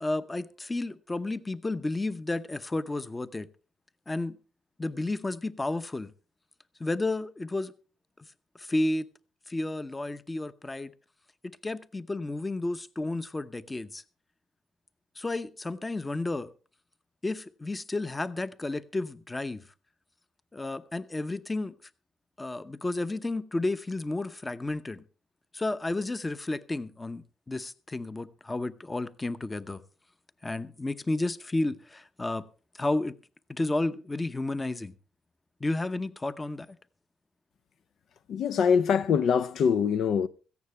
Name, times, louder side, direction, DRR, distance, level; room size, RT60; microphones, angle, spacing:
voice 1, 0.0-3.5 4.1-4.4 4.8-6.1 6.8-7.7 8.5-9.1 9.5-10.9 11.4-14.0 15.2-16.5 17.2-19.6 20.5-21.7 22.4-25.0 25.5-29.8 30.4-32.4 32.7-33.2 33.5-34.9 35.6-36.8, left 2 dB, 20° left, 0.8 m, -32 dB
voice 2, 38.3-40.3, left 6 dB, 70° left, 0.5 m, -24 dB
16.5 x 14.5 x 3.3 m
cardioid pair, 90°, 0 cm